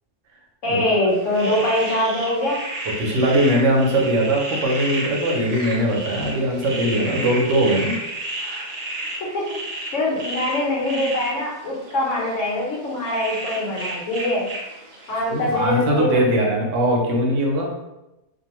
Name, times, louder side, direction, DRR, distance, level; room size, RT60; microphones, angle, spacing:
voice 1, 0.6-2.6 9.2-9.5 9.9-14.5 15.1-16.2, left 1 dB, 85° left, -3 dB, 1.2 m, -23 dB
sound 1, 1.1-15.6, right 2 dB, 50° right, 0.4 m, -32 dB
voice 2, 3.0-8.0 15.3-17.7, right 1 dB, 80° right, 0 dB, 1.0 m, -20 dB
2.5 x 2.3 x 2.9 m, 0.94 s
omnidirectional pair, 1.2 m